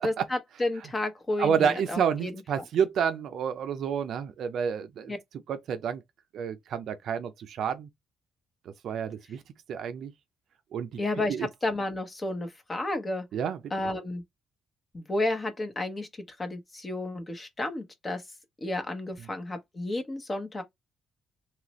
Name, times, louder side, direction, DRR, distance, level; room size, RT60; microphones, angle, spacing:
voice 1, 0.0-2.3 5.1-5.2 11.0-13.2 13.7-14.2 14.9-16.1 16.4-18.2 18.6-20.6, left 2 dB, 30° left, 1.0 m, -31 dB
voice 2, 1.4-5.1 5.5-6.0 6.3-7.9 8.8-9.4 9.7-10.1 10.7-11.0 11.3-11.5 13.3-13.6, right 7 dB, 70° right, 0.5 m, -29 dB
3.1 x 2.4 x 3.0 m
cardioid pair, 90°, 0 cm